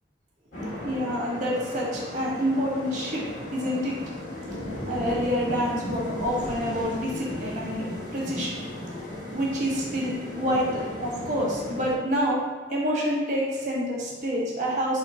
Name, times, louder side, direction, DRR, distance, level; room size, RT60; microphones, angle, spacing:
sound 1, 0.5-11.9, left 1 dB, 45° left, 1.5 m, -35 dB
voice 1, 0.8-3.2 3.5-4.0 4.8-8.7 9.3-12.4 12.7-15.0, equal, 45° right, -3 dB, 1.2 m, -27 dB
4.0 x 3.0 x 4.3 m, 1.3 s
head